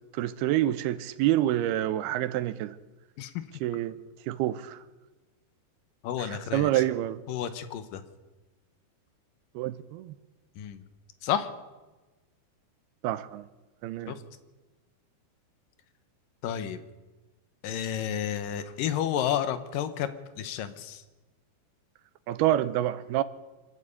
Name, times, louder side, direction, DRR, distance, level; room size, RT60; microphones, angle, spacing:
voice 1, 0.1-2.8 3.6-4.0 4.3-4.8 6.2-7.2 9.5-10.1 13.0-13.5 13.8-14.2 22.3-23.2, right 13 dB, 90° right, 2.8 m, -27 dB
voice 2, 6.0-6.8 7.3-8.0 10.6-10.8 11.2-11.5 14.1-14.2 16.4-16.8 17.6-20.1 20.4-21.0, left 10 dB, 70° left, 2.7 m, -31 dB
25.0 x 12.5 x 8.4 m
omnidirectional pair, 4.4 m